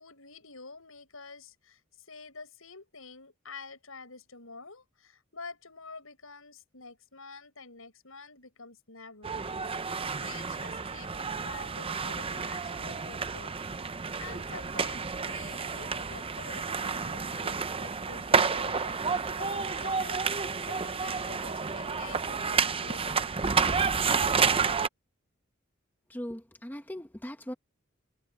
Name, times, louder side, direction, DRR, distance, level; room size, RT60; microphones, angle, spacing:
voice 1, 0.0-9.4 10.2-13.5 14.2-23.3, left 4 dB, 80° left, 7.0 m, -48 dB
sound 1, 9.2-24.9, right 5 dB, 25° right, 0.7 m, -30 dB
sound 2, 15.7-22.6, left 3 dB, 45° left, 6.3 m, -55 dB
voice 2, 26.1-27.5, equal, 10° left, 1.3 m, -39 dB
head